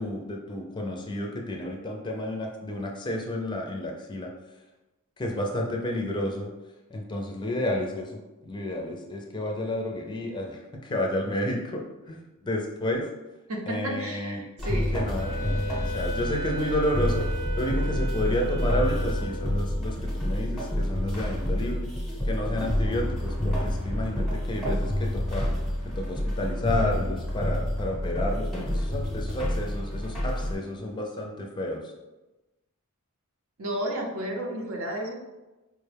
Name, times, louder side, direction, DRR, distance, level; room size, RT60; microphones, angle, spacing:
voice 1, 0.0-4.3 5.2-6.5 6.9-8.1 8.4-12.2 12.4-13.0 13.7-14.5 14.7-15.6 15.9-17.3 17.5-21.9 22.3-25.5 26.0-31.8, left 1 dB, 20° left, 1 dB, 0.4 m, -31 dB
voice 2, 13.5-15.1 33.6-35.1, right 1 dB, 65° right, 0 dB, 0.7 m, -32 dB
sound 1, 14.6-30.5, left 1 dB, ahead, 0.9 m, -28 dB
Wind instrument woodwind instrument, 15.2-19.7, right 2 dB, 25° right, 0.6 m, -36 dB
4.6 x 2.2 x 3.3 m, 1.1 s
head